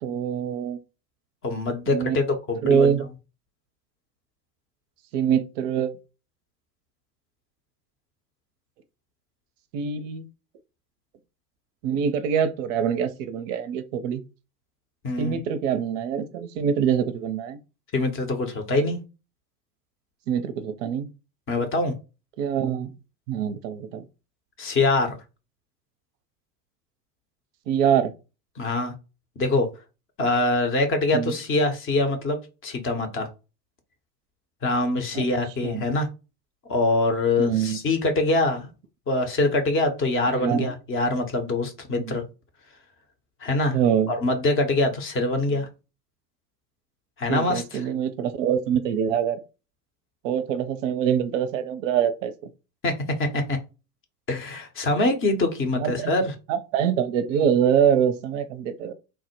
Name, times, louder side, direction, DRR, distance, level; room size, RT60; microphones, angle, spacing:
voice 1, 0.0-0.8 1.9-2.2 2.6-3.0 5.1-5.9 9.7-10.3 11.8-14.2 15.2-17.6 20.3-21.1 22.4-22.9 23.3-24.0 27.7-28.1 31.1-31.3 35.1-35.2 35.6-35.8 37.4-37.8 40.3-40.7 42.0-42.2 43.7-44.1 47.3-49.4 50.2-52.3 55.8-56.2 56.5-58.9, right 8 dB, 55° right, 0.5 m, -24 dB
voice 2, 1.4-2.9 15.0-15.4 17.9-19.0 21.5-21.9 24.6-25.2 28.6-28.9 29.4-29.7 30.2-33.3 34.6-36.1 36.7-38.7 39.1-42.2 43.4-43.8 44.1-45.7 47.2-47.9 52.8-53.6 54.3-56.3, left 2 dB, 25° left, 0.7 m, -24 dB
3.3 x 2.0 x 3.0 m
figure-of-eight pair, 80°, 48 cm